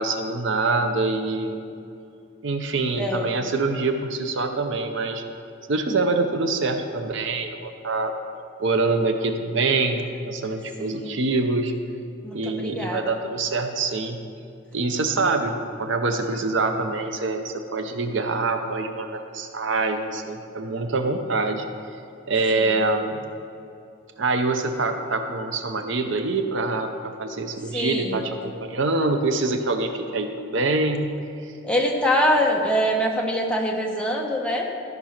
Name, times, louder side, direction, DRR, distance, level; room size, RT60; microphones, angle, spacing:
voice 1, 0.0-1.6 2.4-5.2 5.7-8.1 8.6-11.7 12.3-14.2 14.7-15.5 15.8-21.7 21.9-22.0 22.3-23.2 24.2-31.1 31.4-31.5, right 3 dB, 60° right, 6 dB, 0.7 m, -25 dB
voice 2, 10.8-11.2 12.2-13.1 22.5-22.8 27.7-28.2 31.6-34.7, equal, 5° left, -1 dB, 0.9 m, -24 dB
13.5 x 5.3 x 5.9 m, 2.5 s
head